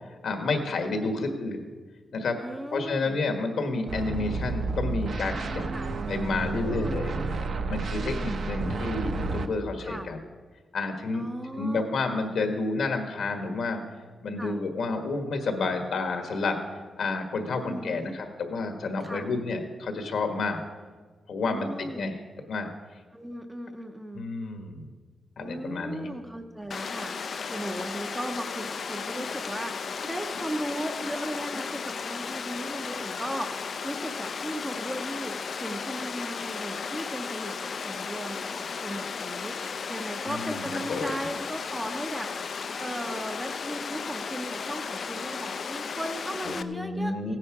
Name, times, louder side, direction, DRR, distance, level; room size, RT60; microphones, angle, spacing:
voice 1, 0.2-1.7 2.1-2.4 2.7-5.7 6.1-7.1 7.7-10.2 10.7-11.3 11.5-13.8 14.2-16.6 17.0-20.6 21.3-22.2 22.5-22.7 24.1-24.9 25.4-26.1 40.3-41.1 46.4-47.4, left 3 dB, 65° left, 5 dB, 1.5 m, -30 dB
voice 2, 2.4-3.2 5.6-5.9 6.7-7.7 8.0-8.3 9.8-10.1 11.1-11.9 14.4-14.6 17.5-18.2 19.0-19.3 21.4-22.1 23.1-24.2 25.4-47.4, right 1 dB, 5° right, 4 dB, 0.7 m, -37 dB
sound 1, 3.9-9.5, right 3 dB, 50° right, 0.8 m, -31 dB
Water, 26.7-46.6, left 5 dB, 45° left, 0.5 m, -35 dB
16.5 x 9.8 x 4.8 m, 1.4 s
wide cardioid pair, 165°, 0 cm